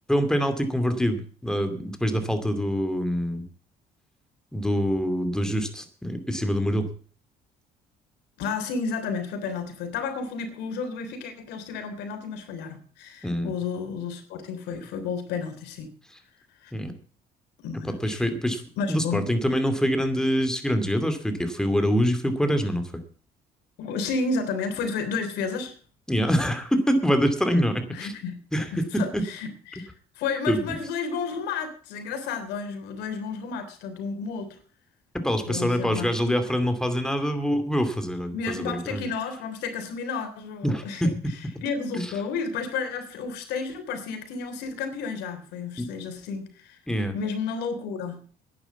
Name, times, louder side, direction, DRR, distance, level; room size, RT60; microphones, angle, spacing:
voice 1, 0.1-3.4 4.5-6.9 13.2-13.5 16.7-16.9 17.9-18.6 18.9-23.0 26.1-28.1 28.5-29.2 29.8-29.9 30.5-30.6 35.1-39.1 40.6-41.1 41.9-42.1 45.8-45.9 46.9-47.1, equal, 5° left, 8 dB, 2.5 m, -25 dB
voice 2, 8.4-15.9 16.6-16.7 17.6-18.3 18.8-19.3 23.8-25.8 27.9-28.4 28.7-29.9 30.1-34.6 35.5-36.1 38.3-41.1 41.6-46.8 47.1-48.4, left 5 dB, 85° left, 7 dB, 3.4 m, -32 dB
10.5 x 9.7 x 8.0 m, 0.43 s
cardioid pair, 110°, 17 cm